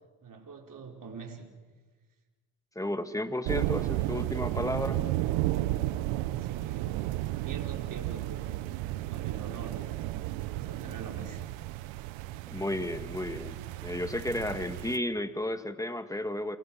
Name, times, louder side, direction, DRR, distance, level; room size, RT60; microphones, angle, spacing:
voice 1, 0.2-1.5 6.4-8.5 9.1-11.4, right 5 dB, 45° right, 1 dB, 5.6 m, -45 dB
voice 2, 2.8-5.0 12.5-16.6, left 1 dB, 5° left, 8 dB, 2.2 m, -33 dB
sound 1, 3.5-15.0, right 16 dB, 90° right, 1.0 m, -33 dB
29.5 x 26.5 x 6.0 m, 1.4 s
supercardioid pair, 65°, 45 cm